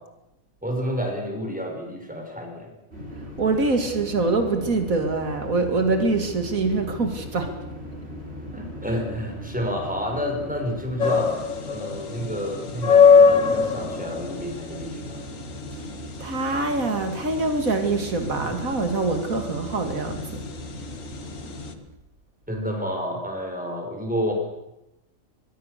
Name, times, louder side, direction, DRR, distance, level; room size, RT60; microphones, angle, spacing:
voice 1, 0.6-2.7 8.5-11.3 11.7-15.2 22.5-24.3, equal, 5° right, 2 dB, 5.7 m, -30 dB
sound 1, 2.9-21.7, left 1 dB, 50° right, 5.6 m, -38 dB
voice 2, 3.4-7.5 16.2-20.4, right 3 dB, 85° right, 6 dB, 2.7 m, -24 dB
sound 2, 11.0-21.7, left 5 dB, 70° left, 1.8 m, -22 dB
24.5 x 22.0 x 6.7 m, 0.89 s
omnidirectional pair, 1.4 m